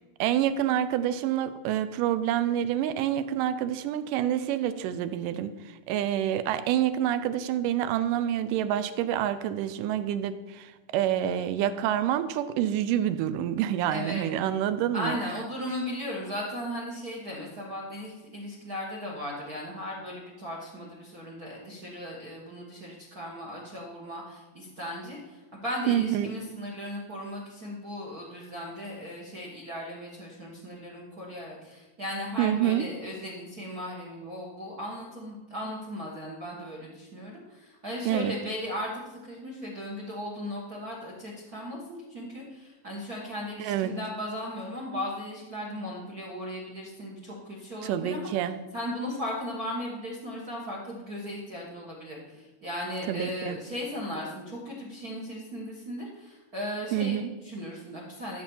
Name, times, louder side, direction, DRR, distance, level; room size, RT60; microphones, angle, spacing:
voice 1, 0.2-15.2 25.9-26.4 32.4-32.9 38.1-38.4 43.6-44.0 47.8-48.6 53.1-53.6 56.9-57.3, right 11 dB, 80° right, 12 dB, 2.1 m, -27 dB
voice 2, 13.9-14.3 14.9-48.3 48.7-57.2 57.4-58.4, left 1 dB, 50° right, -3 dB, 1.1 m, -37 dB
13.0 x 4.3 x 7.0 m, 1.1 s
omnidirectional pair, 4.0 m